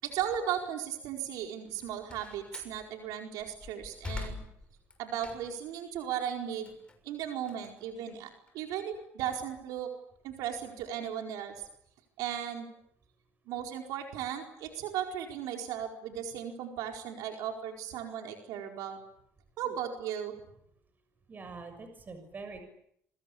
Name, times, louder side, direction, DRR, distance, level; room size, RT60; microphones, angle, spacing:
voice 1, 0.0-4.4 5.0-6.8 7.0-9.9 10.2-11.6 12.2-12.7 13.5-19.0 19.6-20.4, right 9 dB, 90° right, 3 dB, 4.6 m, -36 dB
Slam, 1.6-2.8 3.3-5.7 6.1-8.5, left 3 dB, 15° left, 6.6 m, -44 dB
voice 2, 21.3-22.6, right 4 dB, 30° right, 8 dB, 6.6 m, -44 dB
27.5 x 24.5 x 8.6 m, 0.72 s
cardioid pair, 125°, 6 cm